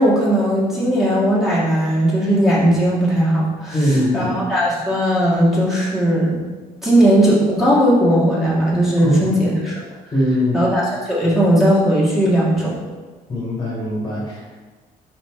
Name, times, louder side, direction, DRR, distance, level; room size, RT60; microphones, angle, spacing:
voice 1, 0.0-6.4 6.8-9.8 10.5-12.8, equal, ahead, -8 dB, 1.9 m, -17 dB
voice 2, 3.7-4.3 9.0-9.4 10.1-10.6 13.3-14.4, equal, 25° left, -5 dB, 1.8 m, -21 dB
4.8 x 4.1 x 4.8 m, 1.3 s
cardioid pair, 110°, 17 cm